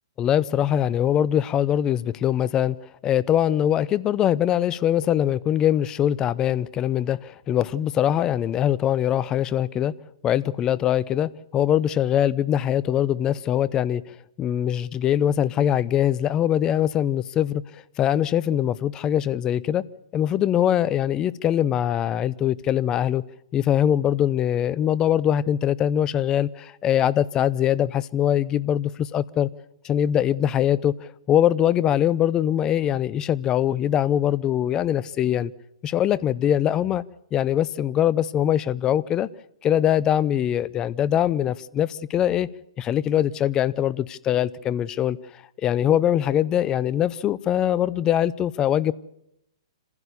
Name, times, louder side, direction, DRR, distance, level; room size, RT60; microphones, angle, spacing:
voice 1, 0.2-2.8 3.0-9.9 10.2-14.0 14.4-17.6 18.0-19.8 20.1-23.2 23.5-29.5 29.8-35.5 35.8-37.0 37.3-39.3 39.6-42.5 42.8-45.2 45.6-48.9, left 10 dB, 25° left, 0.7 m, -22 dB
26.5 x 16.0 x 6.9 m
hypercardioid pair, 130°, 3 cm